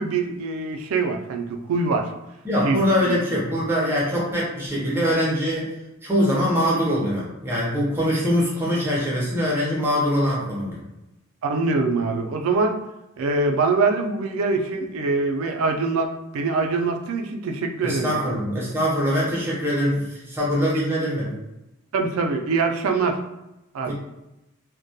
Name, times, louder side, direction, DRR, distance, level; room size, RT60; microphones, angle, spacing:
voice 1, 0.0-2.1 2.6-3.1 11.4-12.8 13.2-18.3 21.9-23.2 23.7-23.9, right 3 dB, 75° right, 4 dB, 0.3 m, -24 dB
voice 2, 2.4-5.7 6.0-10.8 17.8-21.3 23.8-23.9, equal, 10° right, -6 dB, 0.5 m, -23 dB
2.2 x 2.1 x 2.6 m, 0.94 s
head